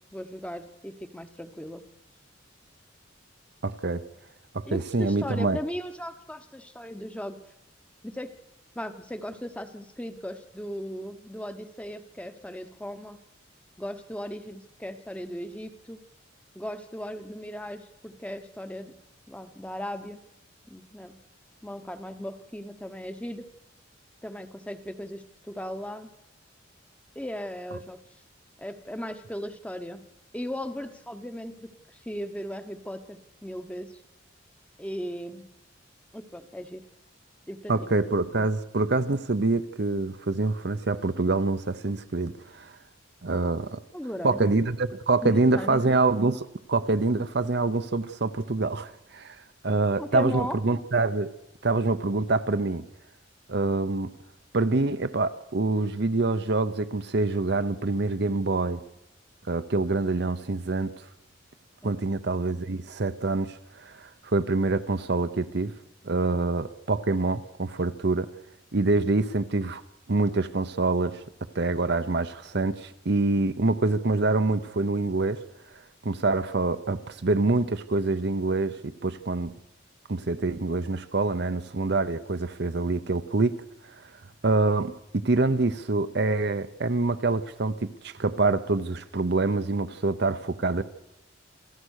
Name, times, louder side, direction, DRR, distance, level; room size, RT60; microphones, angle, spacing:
voice 1, 0.1-1.8 4.7-7.4 8.0-8.4 8.7-13.2 13.8-16.0 16.5-19.0 19.3-20.2 20.7-21.2 21.6-23.4 24.2-26.1 27.1-28.0 28.6-30.0 30.3-34.0 34.8-35.5 36.1-36.8 37.5-37.9 43.9-44.5 45.2-45.8 49.6-50.6 61.8-61.9, equal, 5° left, 1.0 m, -37 dB
voice 2, 3.6-4.0 4.5-5.6 37.7-42.8 43.2-43.8 44.2-49.4 49.6-51.3 51.6-52.8 53.5-54.1 54.5-58.8 59.5-60.9 61.8-65.7 66.0-68.3 68.7-69.8 70.1-71.2 71.5-75.4 76.0-79.5 80.1-83.6 84.4-90.8, right 3 dB, 55° right, 0.8 m, -26 dB
27.5 x 15.0 x 6.5 m
head